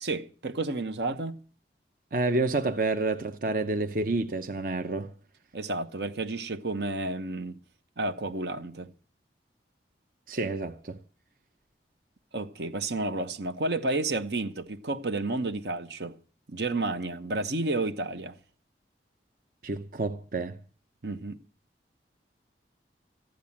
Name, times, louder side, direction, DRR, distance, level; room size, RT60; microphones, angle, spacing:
voice 1, 0.0-1.4 5.5-7.6 8.0-8.9 12.3-16.2 16.5-18.4 21.0-21.4, right 2 dB, 75° right, 1.1 m, -31 dB
voice 2, 2.1-5.1 10.3-11.0 19.6-20.6, right 2 dB, 50° right, 0.8 m, -29 dB
15.0 x 10.5 x 7.3 m
head